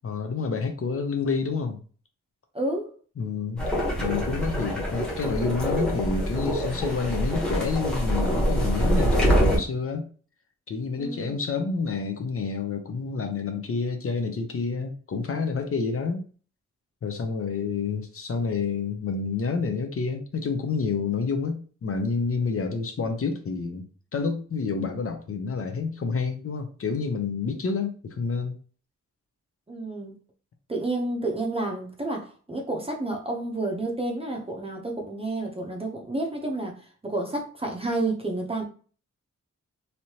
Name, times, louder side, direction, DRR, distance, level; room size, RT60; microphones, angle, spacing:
voice 1, 0.0-1.8 3.2-3.6 4.0-10.1 10.7-16.2 17.0-28.6, left 4 dB, 50° left, 0.6 m, -29 dB
voice 2, 2.5-2.9 11.0-11.5 29.7-30.1 30.7-38.6, right 2 dB, 20° right, 0.6 m, -30 dB
sound 1, 3.6-9.6, equal, 5° left, 0.9 m, -25 dB
3.2 x 2.7 x 2.8 m
wide cardioid pair, 140°, 30 cm